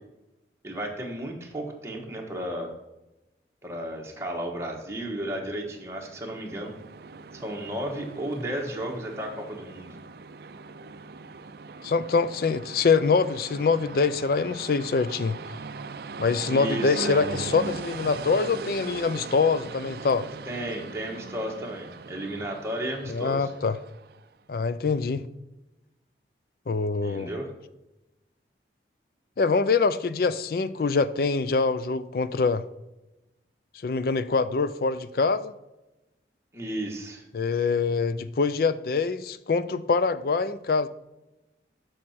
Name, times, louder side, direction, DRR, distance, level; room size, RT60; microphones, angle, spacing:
voice 1, 0.6-2.7 3.6-6.7 7.3-10.0 16.5-17.2 20.4-23.5 27.0-27.5 36.5-37.2, right 1 dB, 15° right, 1.2 m, -33 dB
Train, 5.6-24.3, right 4 dB, 55° right, 0.4 m, -40 dB
voice 2, 11.8-15.4 16.2-20.3 23.1-23.8 24.5-25.3 26.7-27.3 29.4-32.6 33.8-35.5 37.3-40.9, left 4 dB, 55° left, 0.4 m, -24 dB
6.4 x 6.4 x 4.2 m
head